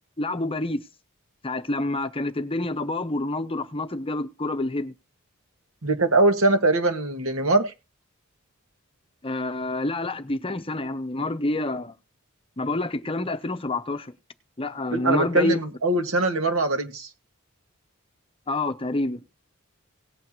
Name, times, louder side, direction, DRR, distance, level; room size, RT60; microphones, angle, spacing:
voice 1, 0.2-0.9 1.4-4.9 9.2-12.0 12.6-14.1 14.6-15.6 18.5-19.2, left 2 dB, 25° left, 0.8 m, -28 dB
voice 2, 5.8-7.7 14.9-17.1, right 2 dB, 70° right, 1.9 m, -22 dB
18.0 x 8.4 x 3.0 m
head